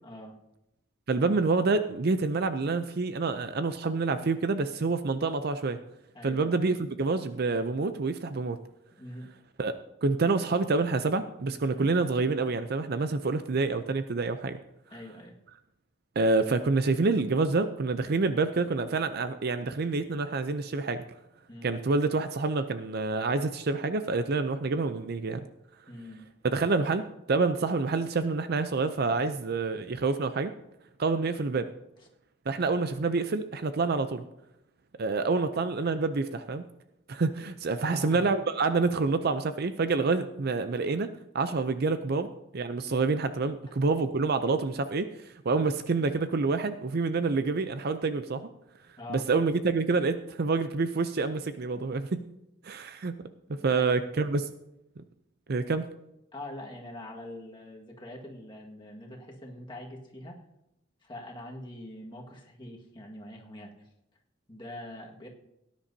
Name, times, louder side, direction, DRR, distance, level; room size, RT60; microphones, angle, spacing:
voice 1, 0.0-0.4 6.1-6.5 9.0-9.3 11.7-11.9 14.9-15.3 21.5-21.7 25.9-26.2 32.0-32.1 37.8-38.3 43.7-43.8 49.0-49.2 53.5-53.9 56.3-60.4 61.0-63.7 64.5-65.3, left 1 dB, 25° left, -1 dB, 1.7 m, -43 dB
voice 2, 1.1-5.8 6.2-8.6 9.6-14.6 16.2-21.0 21.6-25.4 26.5-30.5 31.0-31.7 32.5-34.3 35.0-36.6 37.1-41.1 41.3-48.5 49.1-52.2 52.6-53.1 53.5-54.5 55.5-55.9, right 3 dB, 50° right, 10 dB, 0.5 m, -27 dB
18.0 x 10.0 x 2.8 m, 0.85 s
head